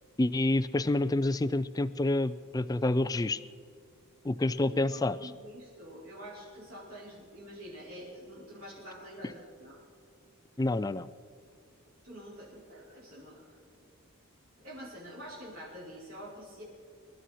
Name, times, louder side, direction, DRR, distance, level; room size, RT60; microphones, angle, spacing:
voice 1, 0.2-3.4 4.2-5.3 10.6-11.1, left 2 dB, 15° left, 16 dB, 0.3 m, -28 dB
voice 2, 4.6-9.8 12.0-13.4 14.6-16.6, equal, 80° right, -7 dB, 4.9 m, -46 dB
24.5 x 12.5 x 4.2 m, 2.2 s
head